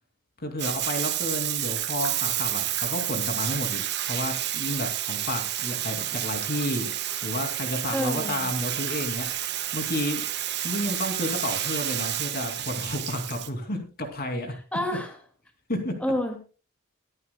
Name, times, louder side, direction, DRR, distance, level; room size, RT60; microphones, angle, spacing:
voice 1, 0.4-6.9 7.2-10.2 10.6-14.5 15.7-16.0, left 1 dB, 45° left, 5 dB, 2.6 m, -31 dB
Bathtub (filling or washing), 0.6-13.5, right 12 dB, 50° right, 1.2 m, -30 dB
voice 2, 7.9-8.5 14.7-15.1 16.0-16.4, left 1 dB, 5° left, 3 dB, 2.0 m, -28 dB
23.0 x 11.0 x 2.2 m, 0.35 s
head